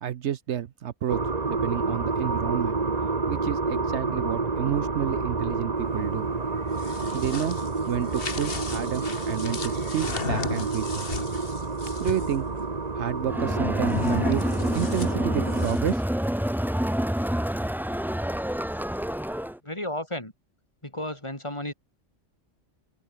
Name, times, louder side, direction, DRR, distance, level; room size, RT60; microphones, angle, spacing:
voice 1, 0.0-1.2 1.5-2.8 3.3-6.3 7.1-7.6 7.9-11.1 12.0-12.5 12.9-14.5 14.7-16.0, right 10 dB, 70° right, 1.0 m, -30 dB
sound 1, 1.1-15.7, right 3 dB, 35° right, 1.6 m, -29 dB
sound 2, 6.6-12.4 13.8-16.0, left 5 dB, 50° left, 1.8 m, -35 dB
Crowd, 13.3-19.6, equal, ahead, 0.4 m, -27 dB
voice 2, 19.6-20.3 20.8-21.7, left 1 dB, 25° left, 4.2 m, -33 dB
open air
omnidirectional pair, 1.2 m